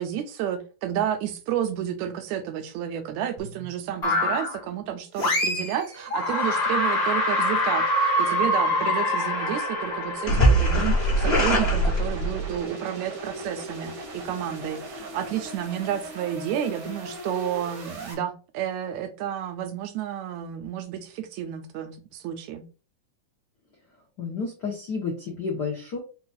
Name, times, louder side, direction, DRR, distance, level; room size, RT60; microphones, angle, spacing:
voice 1, 0.0-22.6, right 10 dB, 80° right, 1.9 m, -31 dB
sound 1, 3.4-18.1, right 2 dB, 60° right, 1.1 m, -39 dB
sound 2, 4.0-4.6 5.2-5.8 6.1-12.5, equal, 50° left, 0.7 m, -23 dB
voice 2, 24.2-26.0, left 4 dB, 75° left, 0.9 m, -31 dB
4.8 x 2.4 x 3.9 m
omnidirectional pair, 3.5 m